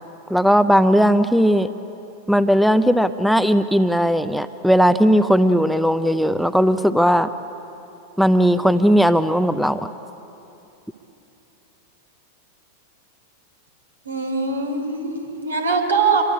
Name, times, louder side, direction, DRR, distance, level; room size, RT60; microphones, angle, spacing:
voice 1, 0.3-1.7 2.3-7.3 8.2-9.9, equal, ahead, 13 dB, 0.7 m, -17 dB
voice 2, 14.0-16.2, right 4 dB, 75° right, 3 dB, 3.8 m, -22 dB
26.5 x 22.5 x 8.4 m, 2.9 s
figure-of-eight pair, 90°, 0 cm